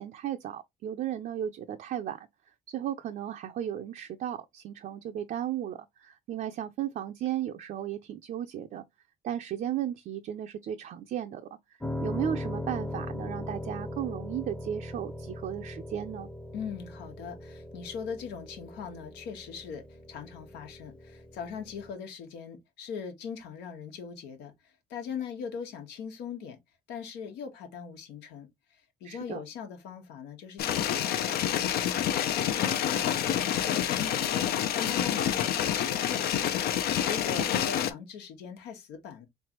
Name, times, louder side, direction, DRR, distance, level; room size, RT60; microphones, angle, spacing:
voice 1, 0.0-2.3 2.7-8.8 9.2-11.5 12.0-16.3 29.0-29.4 37.4-37.6, right 10 dB, 55° right, 0.5 m, -35 dB
Piano, 11.8-21.9, left 1 dB, 5° left, 0.7 m, -39 dB
voice 2, 16.5-26.6 26.9-36.5 37.0-39.3, left 6 dB, 85° left, 1.3 m, -41 dB
sound 1, 30.6-37.9, left 10 dB, 65° left, 0.6 m, -28 dB
3.8 x 3.3 x 2.9 m
cardioid pair, 110°, 17 cm